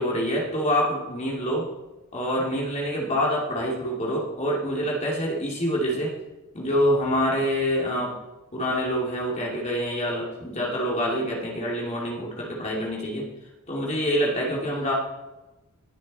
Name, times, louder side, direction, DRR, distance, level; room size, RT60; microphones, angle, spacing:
voice 1, 0.0-1.6 2.1-6.1 6.6-8.1 8.5-13.2 13.7-14.9, equal, 30° left, -3 dB, 2.5 m, -26 dB
19.5 x 6.6 x 4.2 m, 1.0 s
head